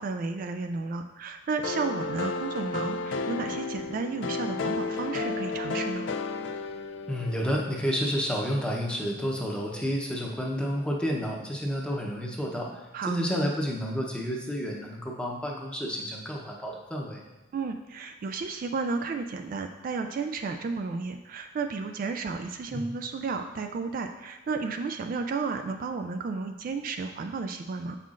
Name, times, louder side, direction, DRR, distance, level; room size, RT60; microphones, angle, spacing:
voice 1, 0.0-6.1 12.9-13.2 17.5-28.0, right 4 dB, 50° right, 6 dB, 0.3 m, -33 dB
sound 1, 1.6-7.5, left 3 dB, 75° left, 0.4 m, -32 dB
voice 2, 7.1-12.8 13.1-17.2 22.7-22.9, equal, 5° left, -1 dB, 0.8 m, -30 dB
7.4 x 5.5 x 2.5 m, 1.1 s
head